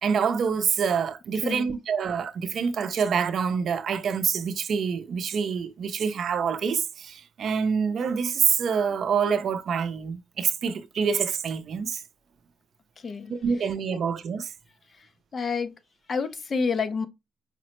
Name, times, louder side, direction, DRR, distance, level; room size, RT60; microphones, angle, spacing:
voice 1, 0.0-12.0 13.3-14.5, right 6 dB, 60° right, 0.5 m, -26 dB
voice 2, 1.4-1.8 13.0-13.4 13.9-14.0 15.3-15.7 16.1-17.1, left 5 dB, 40° left, 0.5 m, -28 dB
5.0 x 2.0 x 2.9 m
cardioid pair, 90°, 0 cm